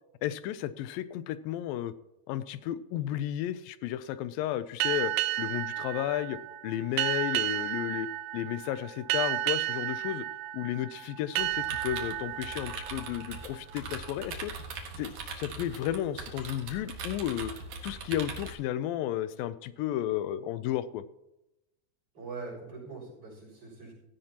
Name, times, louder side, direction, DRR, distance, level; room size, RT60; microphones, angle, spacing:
voice 1, 0.2-1.9 2.3-5.1 5.4-6.4 6.6-8.1 8.3-10.3 10.5-14.5 15.0-17.5 17.8-21.1, left 12 dB, 80° left, 14 dB, 2.1 m, -33 dB
sound 1, 4.8-14.1, right 15 dB, 75° right, 2.4 m, -33 dB
sound 2, 11.4-18.5, right 4 dB, 55° right, 2.7 m, -41 dB
voice 2, 22.1-23.9, right 4 dB, 35° right, -3 dB, 7.4 m, -42 dB
16.5 x 15.5 x 2.9 m, 0.91 s
omnidirectional pair, 4.5 m